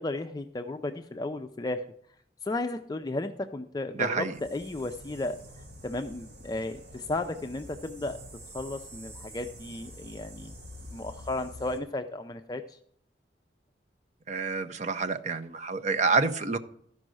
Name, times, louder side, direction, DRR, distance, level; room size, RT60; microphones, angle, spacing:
voice 1, 0.0-1.8 2.4-5.4 5.8-8.2 8.5-10.5 10.9-12.8, left 2 dB, 20° left, 7 dB, 0.4 m, -34 dB
voice 2, 3.9-4.4 14.3-16.6, right 4 dB, 45° right, 8 dB, 0.6 m, -28 dB
sound 1, 4.3-11.8, equal, 85° right, 2.0 m, -47 dB
13.0 x 5.3 x 6.2 m, 0.67 s
head